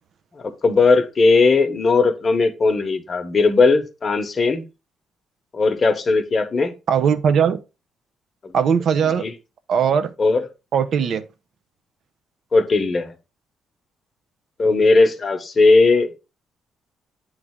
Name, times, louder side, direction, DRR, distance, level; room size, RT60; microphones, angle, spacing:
voice 1, 0.4-4.6 5.5-6.7 8.4-8.5 9.0-9.3 10.2-10.5 12.5-13.1 14.6-16.2, left 3 dB, 35° left, 0.9 m, -18 dB
voice 2, 6.9-7.6 8.5-9.3 9.7-10.1 10.7-11.2, right 7 dB, 65° right, 0.6 m, -19 dB
8.5 x 3.2 x 3.6 m
cardioid pair, 90°, 0 cm